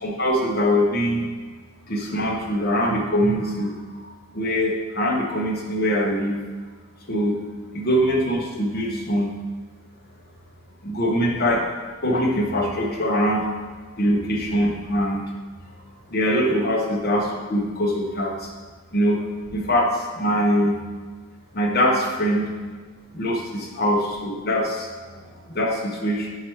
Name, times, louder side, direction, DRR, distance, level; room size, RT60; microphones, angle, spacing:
voice 1, 0.0-1.3 1.9-3.7 4.3-6.4 7.1-7.4 7.7-9.3 10.8-11.6 12.0-13.4 14.0-15.2 16.1-18.5 18.9-19.2 19.5-20.8 21.5-22.4 23.1-24.9 25.5-26.3, equal, 45° left, -1 dB, 0.9 m, -22 dB
voice 2, 9.9-10.4 15.6-16.2 22.9-23.2 25.0-25.6, right 2 dB, 45° right, -6 dB, 1.4 m, -55 dB
4.8 x 4.7 x 4.6 m, 1.5 s
head